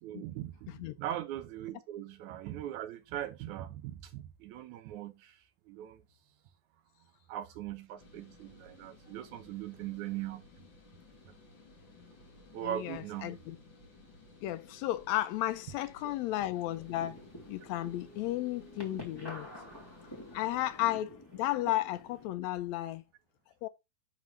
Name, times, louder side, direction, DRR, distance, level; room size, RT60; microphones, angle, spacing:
voice 1, 0.0-5.4 5.7-6.0 7.3-10.4 11.3-11.4 12.5-13.4 16.0-16.1 19.6-19.7, right 12 dB, 75° right, 2.1 m, -40 dB
sound 1, 8.0-20.9, left 2 dB, 40° left, 2.6 m, -57 dB
voice 2, 12.6-13.6 14.4-17.2 17.5-19.5 20.3-23.0 23.6-23.7, left 15 dB, 90° left, 1.5 m, -34 dB
sound 2, 16.6-22.3, equal, 10° left, 1.6 m, -49 dB
11.0 x 3.8 x 3.2 m
omnidirectional pair, 3.6 m